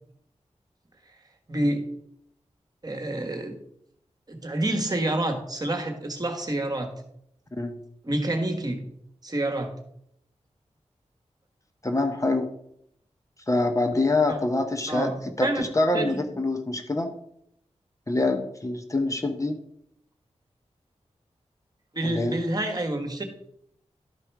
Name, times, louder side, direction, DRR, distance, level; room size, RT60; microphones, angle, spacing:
voice 1, 1.5-1.8 2.8-3.6 4.3-6.9 8.0-8.8 9.2-9.7 14.3-14.4 14.9-15.1 15.4-15.6 15.9-16.3 21.9-23.2, right 1 dB, 35° right, 5 dB, 1.5 m, -28 dB
voice 2, 11.8-12.5 13.5-17.1 18.1-19.6 22.0-22.4, left 2 dB, 25° left, 5 dB, 0.9 m, -25 dB
12.0 x 4.9 x 4.6 m, 0.72 s
wide cardioid pair, 105°, 12 cm